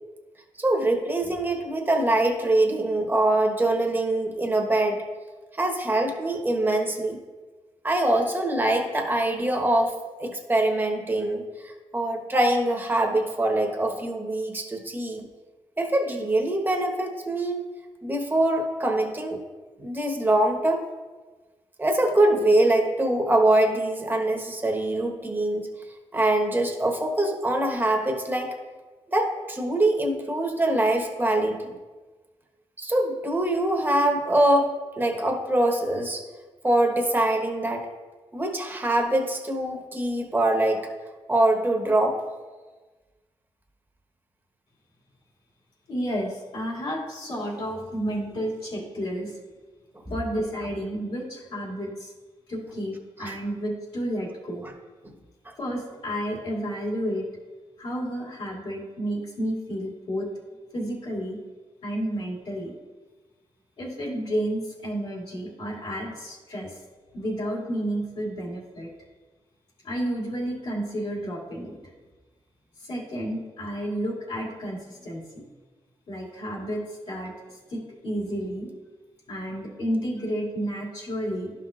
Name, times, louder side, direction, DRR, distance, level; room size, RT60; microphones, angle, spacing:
voice 1, 0.6-5.0 5.6-7.2 7.8-9.9 10.2-15.2 15.8-17.6 18.0-19.4 19.8-20.8 21.8-25.7 26.1-28.5 29.1-31.8 32.8-34.7 35.0-36.2 36.6-37.9 38.3-40.9 41.3-42.2 50.1-50.2 53.2-53.4 55.0-55.1 55.4-55.5, right 1 dB, 20° right, 2 dB, 1.2 m, -24 dB
voice 2, 45.9-49.4 50.1-52.1 52.5-54.6 55.6-57.3 57.8-60.3 60.7-61.4 61.8-62.7 63.8-66.8 67.1-68.9 69.8-71.8 72.8-75.4 76.1-78.7 79.3-81.5, equal, 65° left, -5 dB, 2.4 m, -31 dB
11.5 x 5.8 x 2.5 m, 1.3 s
cardioid pair, 80°, 10 cm